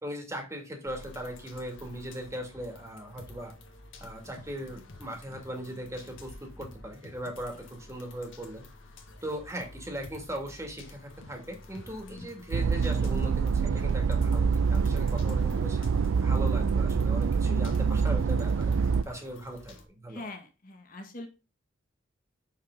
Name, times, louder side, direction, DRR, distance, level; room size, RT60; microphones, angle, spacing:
voice 1, 0.0-3.5 4.0-8.6 9.2-15.8 16.2-20.3, equal, 15° right, 2 dB, 2.2 m, -39 dB
sound 1, 0.8-19.8, left 2 dB, 70° left, 1.7 m, -49 dB
voice 2, 12.0-12.3 20.1-21.3, left 2 dB, 45° left, 4 dB, 1.8 m, -43 dB
sound 2, 12.5-19.0, right 5 dB, 80° right, 0.4 m, -25 dB
6.6 x 5.8 x 3.7 m, 0.31 s
head